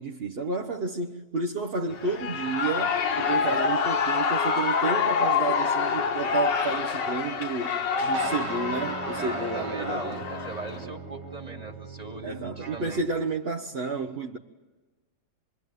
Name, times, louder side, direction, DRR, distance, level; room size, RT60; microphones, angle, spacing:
voice 1, 0.0-10.3 12.2-14.4, right 4 dB, 40° right, 1.0 m, -31 dB
Shout / Cheering, 1.9-10.8, left 6 dB, 65° left, 1.9 m, -27 dB
sound 1, 8.1-13.3, right 5 dB, 60° right, 1.9 m, -38 dB
voice 2, 9.1-13.0, right 2 dB, 20° right, 2.5 m, -40 dB
27.0 x 22.5 x 9.4 m
omnidirectional pair, 2.1 m